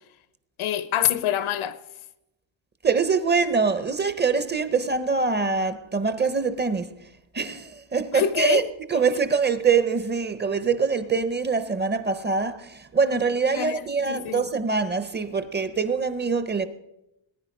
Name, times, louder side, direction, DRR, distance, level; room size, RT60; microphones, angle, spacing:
voice 1, 0.6-1.8 8.1-8.7 13.5-14.5, left 11 dB, 90° left, 1.1 m, -26 dB
voice 2, 2.8-6.9 7.3-8.6 8.9-16.7, right 5 dB, 20° right, 0.6 m, -24 dB
20.0 x 9.6 x 5.3 m
cardioid pair, 165°, 48 cm